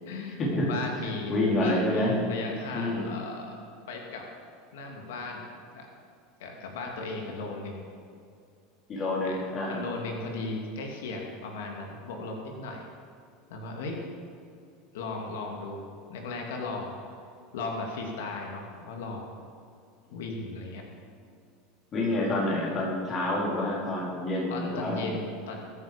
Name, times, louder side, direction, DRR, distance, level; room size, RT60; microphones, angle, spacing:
voice 1, 0.0-3.6 3.9-4.3 4.7-5.5 5.7-5.9 6.4-7.9 9.2-9.4 9.7-12.9 13.5-14.0 14.9-17.0 17.5-19.3 20.1-20.8 24.5-25.6, left 3 dB, 90° left, 1 dB, 2.5 m, -36 dB
voice 2, 1.3-2.1 2.7-3.0 8.9-9.8 20.1-20.2 21.9-25.0, left 1 dB, 25° left, -3 dB, 4.0 m, -28 dB
22.0 x 9.5 x 5.2 m, 2.5 s
supercardioid pair, 160°, 0 cm